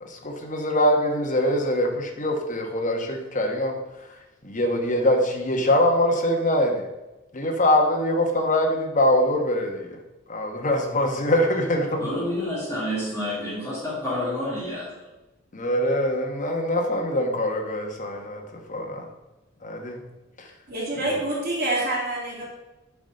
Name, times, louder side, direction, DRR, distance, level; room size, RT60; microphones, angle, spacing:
voice 1, 0.0-3.8 4.4-6.8 7.3-10.0 10.3-12.1 15.5-18.4 18.7-19.0 19.6-20.0 21.0-21.2, left 1 dB, 40° left, 2 dB, 1.2 m, -23 dB
voice 2, 12.0-15.1, left 1 dB, 15° left, -8 dB, 2.0 m, -29 dB
voice 3, 20.7-22.5, right 1 dB, 50° right, -5 dB, 2.8 m, -27 dB
7.1 x 4.2 x 6.4 m, 1.0 s
head